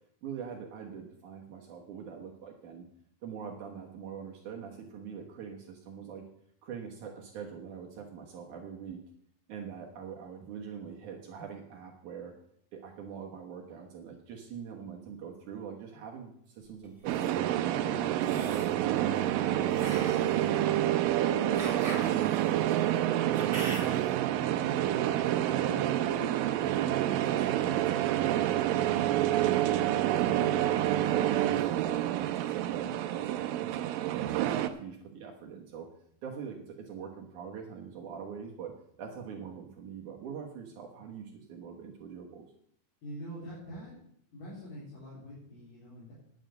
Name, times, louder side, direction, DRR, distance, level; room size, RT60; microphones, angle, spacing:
voice 1, 0.2-2.9 3.2-6.2 6.6-9.0 9.5-12.3 12.7-17.5 17.8-23.0 23.3-23.9 24.1-26.2 26.5-29.0 29.4-35.9 36.2-38.7 39.0-42.5, right 7 dB, 65° right, 0 dB, 2.5 m, -43 dB
sound 1, 16.8-17.3 18.2-18.8 19.7-24.1, right 2 dB, 30° right, 2.7 m, -42 dB
sound 2, 17.1-34.7, right 12 dB, 80° right, 2.4 m, -28 dB
voice 2, 43.0-44.0 44.3-46.1, equal, 70° left, -9 dB, 5.5 m, -44 dB
10.0 x 7.3 x 7.8 m, 0.68 s
omnidirectional pair, 4.1 m